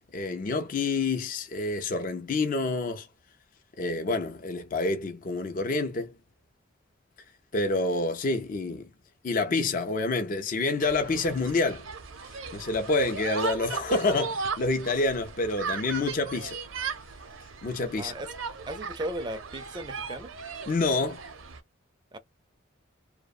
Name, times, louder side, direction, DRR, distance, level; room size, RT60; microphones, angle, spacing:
voice 1, 0.1-3.1 3.8-6.1 7.5-8.9 9.2-11.9 12.5-16.5 17.6-18.1 20.7-21.2, left 3 dB, 40° left, 0.4 m, -28 dB
sound 1, 10.8-21.6, right 5 dB, 75° right, 0.6 m, -37 dB
voice 2, 18.0-18.3 18.7-20.3 22.1-22.2, right 1 dB, 20° right, 0.4 m, -36 dB
2.7 x 2.1 x 2.4 m
head